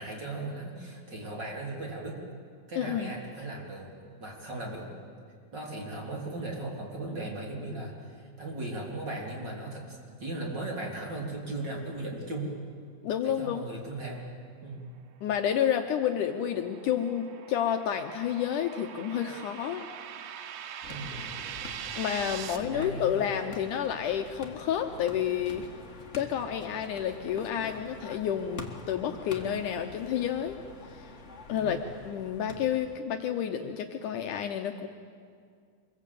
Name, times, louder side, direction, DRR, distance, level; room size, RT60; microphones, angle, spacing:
voice 1, 0.0-2.2 2.7-4.9 5.5-12.5 13.2-14.2 14.6-14.9 20.9-21.4 22.5-23.2 31.5-31.7, right 2 dB, 30° right, -1 dB, 3.9 m, -37 dB
voice 2, 2.8-3.1 13.0-13.6 15.2-19.9 21.9-25.6 26.1-30.6 30.9-31.1 31.5-34.9, left 9 dB, 70° left, 5 dB, 2.2 m, -30 dB
sound 1, 15.8-22.6, right 9 dB, 70° right, 2.4 m, -42 dB
sound 2, 20.8-33.0, left 3 dB, 35° left, 1.1 m, -46 dB
25.0 x 22.5 x 8.4 m, 2.2 s
omnidirectional pair, 4.1 m